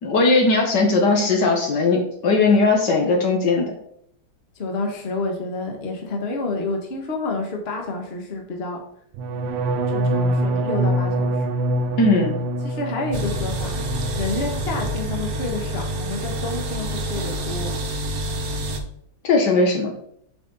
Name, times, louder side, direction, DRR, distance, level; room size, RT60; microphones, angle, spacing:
voice 1, 0.0-3.7 12.0-12.3 19.2-19.9, left 3 dB, 65° left, 2 dB, 1.7 m, -18 dB
voice 2, 4.6-8.8 9.9-11.5 12.6-13.8 14.2-17.7, left 3 dB, 35° left, 2 dB, 1.4 m, -29 dB
sound 1, 9.2-15.1 15.4-15.9 16.2-16.6, right 1 dB, 85° right, 1.4 m, -25 dB
sound 2, 13.1-18.8, right 1 dB, 55° right, 1.3 m, -28 dB
7.8 x 5.2 x 3.9 m, 0.68 s
omnidirectional pair, 2.1 m